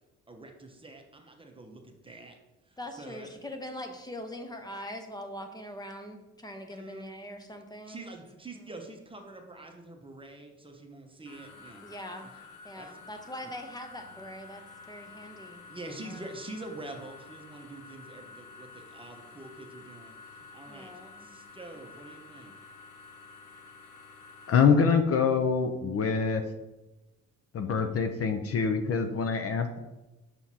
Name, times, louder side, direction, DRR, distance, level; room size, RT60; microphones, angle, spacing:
voice 1, 0.3-2.4 2.7-3.3 6.7-7.1 7.9-11.8 12.7-12.9 15.6-20.9 21.2-22.5, right 2 dB, 15° right, 3 dB, 0.9 m, -45 dB
voice 2, 2.8-8.0 8.5-8.6 11.8-12.3 12.6-16.3 20.7-21.3, equal, 15° left, 5 dB, 0.8 m, -42 dB
sound 1, 11.2-24.6, left 4 dB, 90° left, 1.0 m, -50 dB
voice 3, 24.5-26.4 27.5-29.8, left 6 dB, 50° left, 7 dB, 0.6 m, -25 dB
6.0 x 5.7 x 2.8 m, 1.0 s
cardioid pair, 90°, 30 cm